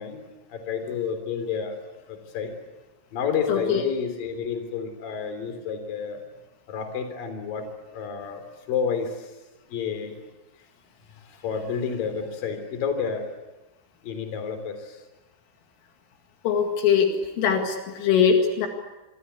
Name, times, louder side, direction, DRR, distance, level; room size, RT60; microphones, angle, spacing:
voice 1, 0.0-1.8 2.1-2.5 3.1-6.2 6.7-7.7 7.9-9.3 9.7-10.1 11.3-13.3 14.0-15.0, left 6 dB, 45° left, 7 dB, 4.7 m, -30 dB
voice 2, 3.5-3.9 16.4-17.1 17.4-18.7, left 7 dB, 75° left, 4 dB, 4.6 m, -21 dB
27.5 x 24.0 x 8.4 m, 1.1 s
omnidirectional pair, 5.9 m